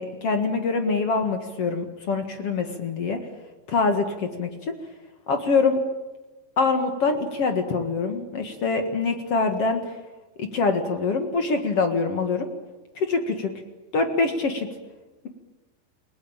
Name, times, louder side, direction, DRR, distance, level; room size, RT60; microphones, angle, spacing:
voice 1, 0.0-3.2 3.7-4.7 5.3-5.8 6.6-9.8 10.4-12.5 13.0-13.5 13.9-14.7, left 4 dB, 50° left, 6 dB, 1.9 m, -24 dB
30.0 x 19.5 x 8.9 m, 1.1 s
omnidirectional pair, 4.9 m